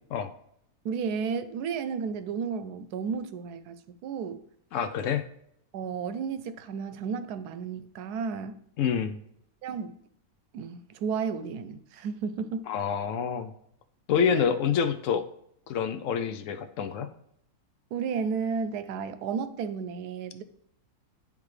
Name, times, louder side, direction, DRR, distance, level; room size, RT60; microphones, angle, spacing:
voice 1, 0.8-4.4 5.7-8.6 9.6-10.0 10.5-12.7 14.3-14.5 17.9-20.4, right 6 dB, 85° right, 12 dB, 1.1 m, -33 dB
voice 2, 4.7-5.2 8.8-9.2 12.7-13.5 14.1-15.2 15.7-17.1, left 7 dB, 65° left, 8 dB, 0.8 m, -27 dB
10.0 x 3.6 x 3.2 m, 0.72 s
omnidirectional pair, 1.6 m